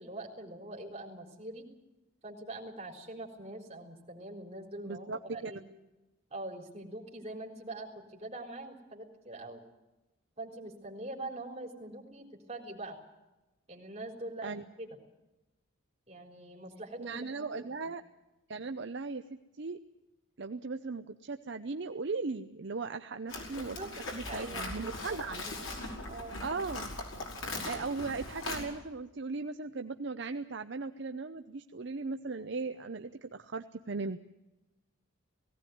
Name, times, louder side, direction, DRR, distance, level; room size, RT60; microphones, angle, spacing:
voice 1, 0.0-1.6 2.2-5.6 6.3-9.6 10.4-13.0 13.7-14.9 16.1-17.9 23.6-25.2 25.5-25.6 26.1-26.4, right 2 dB, 30° right, 0 dB, 3.9 m, -44 dB
voice 2, 4.9-5.5 14.4-14.6 17.0-18.0 18.5-19.2 19.6-19.8 20.4-25.4 26.4-26.9 27.6-34.2, right 4 dB, 55° right, 8 dB, 0.7 m, -38 dB
Livestock farm animals working animals, 23.3-28.6, left 2 dB, 80° left, 5.3 m, -40 dB
18.0 x 17.0 x 9.3 m, 1.0 s
head